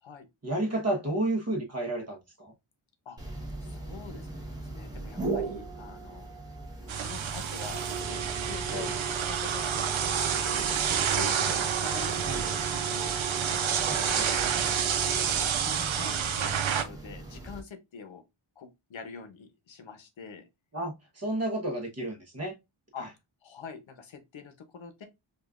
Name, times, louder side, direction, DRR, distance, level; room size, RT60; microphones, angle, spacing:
voice 1, 0.4-2.5 12.2-12.4 13.8-14.3 20.7-22.6, right 1 dB, 30° right, 1.2 m, -31 dB
sound 1, 3.2-17.6, right 4 dB, 10° right, 1.0 m, -38 dB
voice 2, 3.6-4.3 4.7-6.3 6.9-9.9 10.6-13.2 13.6-14.2 15.4-18.2 18.6-20.5 22.9-23.1 23.4-25.1, left 5 dB, 75° left, 0.8 m, -45 dB
sound 2, 6.9-16.8, right 8 dB, 85° right, 0.7 m, -29 dB
5.0 x 2.4 x 2.4 m
wide cardioid pair, 120°, 47 cm